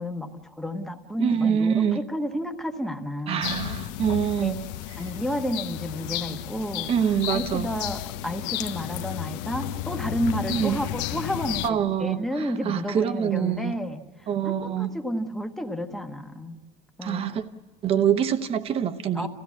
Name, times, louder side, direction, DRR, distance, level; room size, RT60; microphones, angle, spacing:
voice 1, 0.0-3.8 4.4-4.5 5.0-16.6 17.0-17.4 19.1-19.3, equal, ahead, 1.0 m, -31 dB
voice 2, 1.2-2.0 3.3-4.6 6.9-7.7 10.5-10.8 11.6-13.7 14.3-14.9 17.0-17.4 17.8-19.3, right 8 dB, 25° right, 0.9 m, -25 dB
sound 1, 3.4-11.7, left 14 dB, 75° left, 0.9 m, -33 dB
29.0 x 16.0 x 8.4 m
cardioid pair, 175°, 21 cm